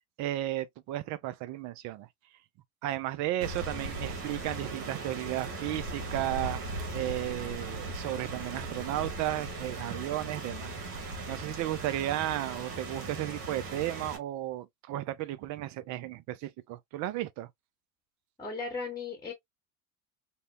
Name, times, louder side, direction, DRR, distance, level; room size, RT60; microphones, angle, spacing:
voice 1, 0.0-2.1 2.8-6.6 6.9-17.5, right 14 dB, 40° right, 0.4 m, -34 dB
Rain, 3.4-14.2, right 2 dB, 75° right, 1.0 m, -38 dB
voice 2, 18.4-19.3, left 4 dB, 10° left, 1.0 m, -36 dB
2.7 x 2.1 x 2.4 m
hypercardioid pair, 70°, 45 cm